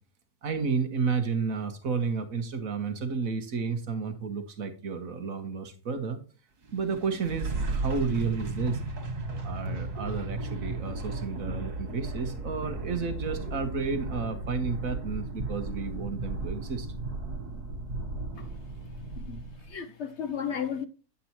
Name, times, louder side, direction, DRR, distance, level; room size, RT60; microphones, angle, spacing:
voice 1, 0.4-6.2 6.7-8.8 9.4-16.9, right 5 dB, 60° right, 1.5 m, -31 dB
sound 1, 6.6-19.7, right 2 dB, 90° right, 2.1 m, -35 dB
voice 2, 19.1-20.9, left 8 dB, 65° left, 0.7 m, -35 dB
9.4 x 8.3 x 2.9 m
omnidirectional pair, 1.6 m